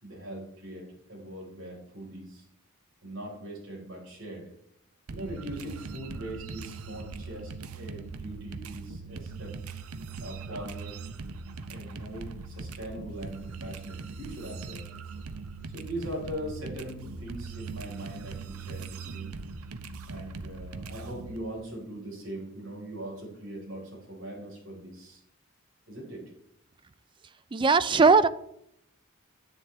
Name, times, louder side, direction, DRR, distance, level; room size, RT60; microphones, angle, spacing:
voice 1, 0.0-2.4 3.0-4.5 5.1-9.6 10.2-11.0 11.7-14.9 15.7-19.3 20.1-25.2 25.9-26.2, right 1 dB, 65° right, -2 dB, 4.6 m, -41 dB
sound 1, 5.1-21.4, right 4 dB, 85° right, 0.7 m, -40 dB
voice 2, 27.5-28.3, right 4 dB, 20° right, 15 dB, 0.3 m, -19 dB
9.9 x 9.4 x 3.4 m, 0.75 s
head